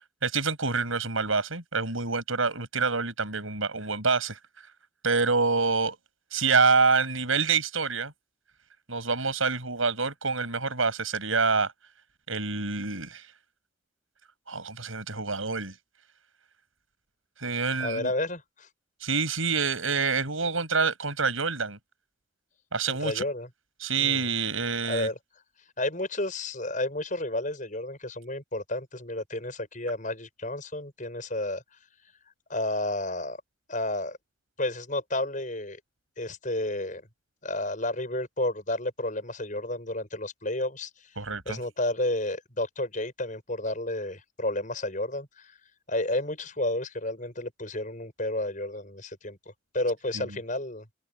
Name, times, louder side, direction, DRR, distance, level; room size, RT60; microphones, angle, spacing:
voice 1, 0.2-4.4 5.0-6.0 6.3-8.1 8.9-11.7 12.3-13.3 14.5-15.8 17.4-18.1 19.0-21.8 22.7-23.2 23.8-25.1 41.2-41.6 50.1-50.3, right 4 dB, 90° right, 7.6 m, -26 dB
voice 2, 17.8-18.7 22.9-23.5 24.0-24.3 24.9-25.2 25.8-31.6 32.5-33.4 33.7-34.2 34.6-35.8 36.2-37.0 37.4-40.9 41.5-45.6 45.9-49.4 49.7-50.9, left 1 dB, 40° left, 7.7 m, -31 dB
open air
head